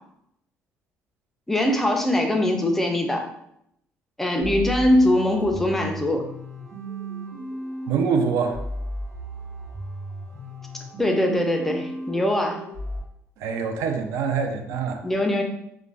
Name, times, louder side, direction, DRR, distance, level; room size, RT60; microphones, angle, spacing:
voice 1, 1.5-3.3 4.2-6.3 11.0-12.6 15.0-15.4, left 1 dB, 5° left, 3 dB, 0.3 m, -22 dB
sound 1, 4.4-13.0, right 1 dB, 50° right, 1.0 m, -35 dB
voice 2, 7.9-8.6 13.4-15.0, right 5 dB, 80° right, 5 dB, 0.3 m, -24 dB
2.4 x 2.1 x 3.2 m, 0.76 s
cardioid pair, 135°, 5 cm